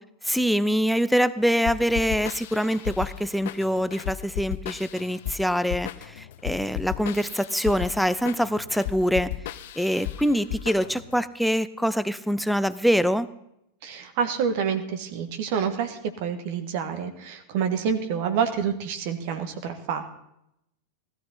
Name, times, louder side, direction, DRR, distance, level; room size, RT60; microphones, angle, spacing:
voice 1, 0.3-9.3 9.8-13.3, equal, ahead, 15 dB, 0.6 m, -24 dB
sound 1, 1.7-11.2, left 14 dB, 55° left, 0.6 m, -35 dB
voice 2, 13.8-20.1, right 7 dB, 50° right, 8 dB, 1.5 m, -28 dB
17.5 x 13.5 x 4.2 m, 0.80 s
figure-of-eight pair, 90°, 0 cm